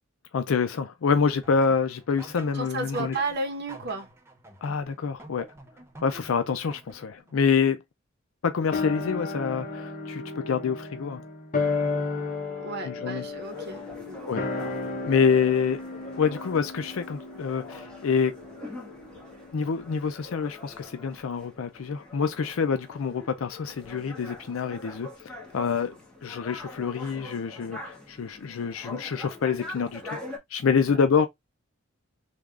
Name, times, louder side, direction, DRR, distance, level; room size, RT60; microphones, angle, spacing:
voice 1, 0.3-3.1 4.6-5.5 6.0-7.8 8.4-11.2 12.8-13.2 14.3-14.4 15.1-15.8 16.2-18.3 19.5-25.9 26.2-30.2 30.5-31.3, left 6 dB, 80° left, 0.4 m, -26 dB
sound 1, 1.4-7.3, right 2 dB, 10° right, 0.6 m, -48 dB
voice 2, 2.5-4.1 12.6-14.3 30.9-31.0, right 3 dB, 55° right, 0.9 m, -33 dB
sound 2, 8.7-19.3 19.6-19.7, left 3 dB, 40° left, 0.9 m, -33 dB
sound 3, 13.2-30.4, left 2 dB, 5° left, 1.0 m, -44 dB
3.3 x 2.4 x 3.6 m
head